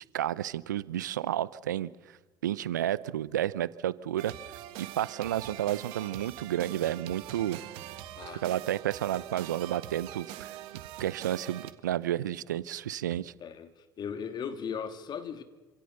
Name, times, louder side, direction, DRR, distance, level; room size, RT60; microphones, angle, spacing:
voice 1, 0.1-1.9 2.4-4.3 4.8-7.6 8.4-10.5 11.0-13.3, right 12 dB, 85° right, 0.7 m, -31 dB
sound 1, 4.2-11.7, right 13 dB, 70° right, 1.8 m, -43 dB
voice 2, 13.4-15.4, left 7 dB, 50° left, 3.0 m, -37 dB
27.0 x 26.5 x 6.8 m
hypercardioid pair, 65°, 10 cm